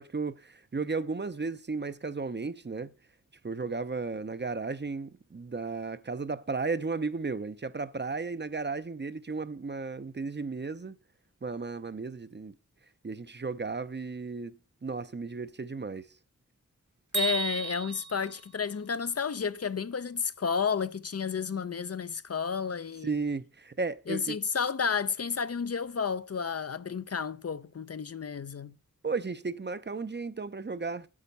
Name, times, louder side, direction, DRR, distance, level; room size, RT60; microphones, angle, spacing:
voice 1, 0.0-2.9 3.4-11.0 11.4-12.5 13.0-14.6 14.8-16.1 23.0-24.4 29.0-31.1, right 4 dB, 35° right, 0.6 m, -34 dB
voice 2, 17.1-23.1 24.1-28.7, left 6 dB, 50° left, 0.5 m, -31 dB
Bell, 17.1-19.2, right 5 dB, 65° right, 1.9 m, -35 dB
8.6 x 7.9 x 5.4 m
wide cardioid pair, 50°, 31 cm